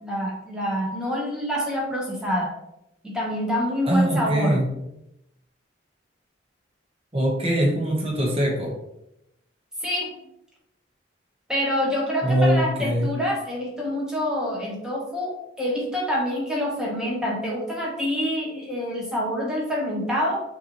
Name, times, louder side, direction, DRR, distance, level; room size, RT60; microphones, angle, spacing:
voice 1, 0.0-2.5 3.0-4.6 9.8-10.2 11.5-20.4, equal, 5° right, -3 dB, 1.1 m, -26 dB
voice 2, 3.9-4.7 7.1-8.7 12.2-13.2, right 1 dB, 30° right, -1 dB, 1.1 m, -22 dB
5.7 x 2.7 x 3.0 m, 0.83 s
head